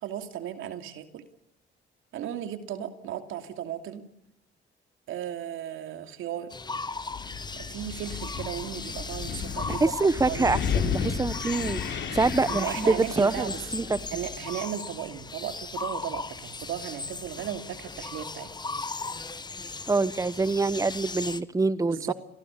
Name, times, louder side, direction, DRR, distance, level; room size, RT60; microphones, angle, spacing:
voice 1, 0.0-1.2 2.1-4.1 5.1-6.5 7.6-9.9 10.2-10.5 12.5-13.7 14.1-18.5 21.9-22.1, right 10 dB, 90° right, 8 dB, 2.7 m, -35 dB
sound 1, 6.5-21.4, left 3 dB, 20° left, 1.2 m, -37 dB
Wind, 7.1-14.4, left 7 dB, 65° left, 3.5 m, -34 dB
voice 2, 9.8-14.0 19.9-22.1, right 3 dB, 15° right, 16 dB, 1.0 m, -25 dB
28.0 x 19.5 x 8.3 m, 0.76 s
cardioid pair, 90°, 20 cm